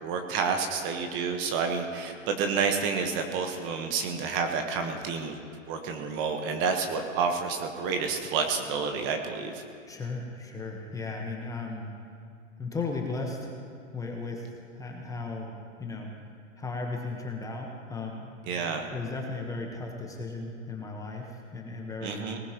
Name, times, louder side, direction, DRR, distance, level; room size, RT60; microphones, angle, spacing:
voice 1, 0.0-5.4 5.7-9.6 18.4-18.8 22.0-22.4, right 5 dB, 30° right, 5 dB, 1.2 m, -29 dB
voice 2, 9.9-11.9 12.6-13.6 13.9-16.1 16.6-18.3 18.9-22.3, left 3 dB, 10° left, 0 dB, 1.2 m, -36 dB
19.0 x 18.5 x 3.0 m, 2.3 s
hypercardioid pair, 125°, 39 cm